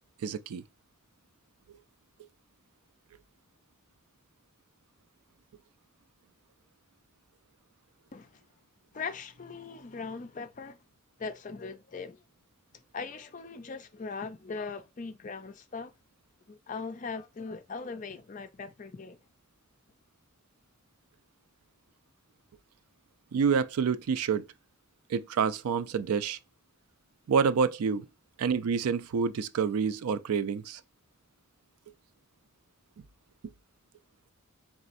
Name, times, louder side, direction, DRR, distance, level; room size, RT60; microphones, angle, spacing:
voice 1, 0.2-0.6 1.7-1.8 23.3-24.4 25.1-26.4 27.3-28.1 28.4-30.8, right 6 dB, 90° right, 0.4 m, -28 dB
voice 2, 8.1-8.4 8.9-10.8 11.2-12.2 12.9-15.9 16.5-19.2, left 4 dB, 35° left, 0.4 m, -40 dB
4.1 x 3.6 x 2.5 m
head